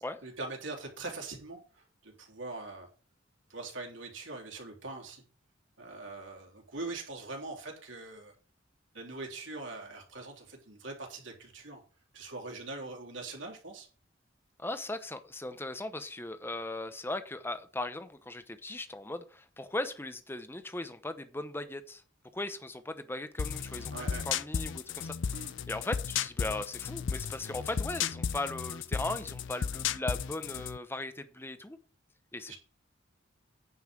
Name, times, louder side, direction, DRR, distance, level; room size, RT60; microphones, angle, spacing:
voice 1, 0.2-2.9 3.5-5.2 5.8-8.3 8.9-11.8 12.1-13.9 23.9-24.3 25.3-25.5 32.5-32.6, right 3 dB, 75° right, 1 dB, 3.3 m, -42 dB
voice 2, 14.6-22.0 22.3-23.9 24.3-25.1 25.7-31.8 32.3-32.5, left 2 dB, 10° left, 10 dB, 0.8 m, -38 dB
sound 1, 23.4-30.8, left 7 dB, 70° left, 0.5 m, -34 dB
9.6 x 5.6 x 6.3 m, 0.38 s
head